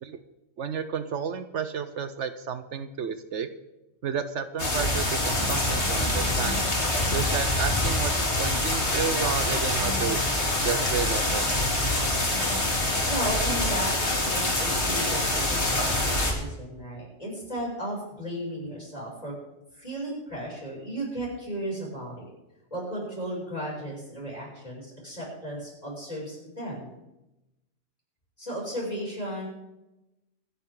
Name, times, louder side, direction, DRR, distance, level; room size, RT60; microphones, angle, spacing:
voice 1, 0.6-3.5 4.0-6.6 7.1-10.2 10.6-11.4, right 6 dB, 70° right, 10 dB, 1.1 m, -31 dB
sound 1, 4.6-16.3, left 1 dB, 60° left, 3.1 m, -25 dB
voice 2, 13.1-19.4 19.7-22.3 22.7-26.9 28.4-29.5, right 1 dB, 30° left, -4 dB, 6.7 m, -35 dB
25.0 x 10.0 x 3.8 m, 0.94 s
omnidirectional pair, 1.3 m